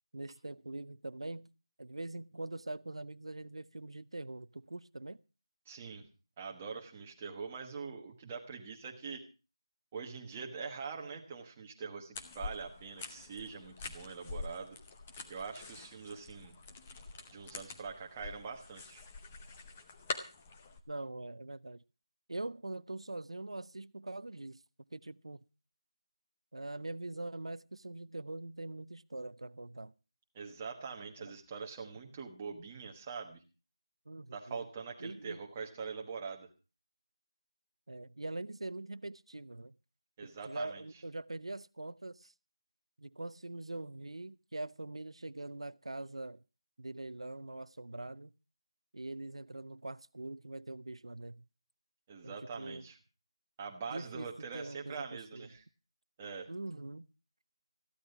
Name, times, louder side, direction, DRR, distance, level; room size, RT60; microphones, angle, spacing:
voice 1, 0.1-1.5 1.8-5.2 20.9-21.8 22.3-24.6 24.9-25.4 26.5-29.9 31.2-31.3 34.1-34.6 35.0-35.4 37.9-39.7 40.4-42.3 43.0-46.4 46.8-48.3 48.9-51.4 52.2-52.8 53.9-55.0 55.3-55.5 56.5-57.1, right 2 dB, 75° right, 0.7 m, -43 dB
voice 2, 5.7-6.1 6.4-9.2 9.9-14.8 15.3-16.5 17.3-19.0 30.3-33.4 34.3-36.5 40.2-40.8 52.1-53.0 53.6-55.6 56.2-56.5, right 5 dB, 10° right, 1.2 m, -43 dB
sound 1, 12.1-20.8, left 3 dB, 10° left, 0.7 m, -46 dB
15.0 x 12.0 x 5.8 m
figure-of-eight pair, 175°, 3 cm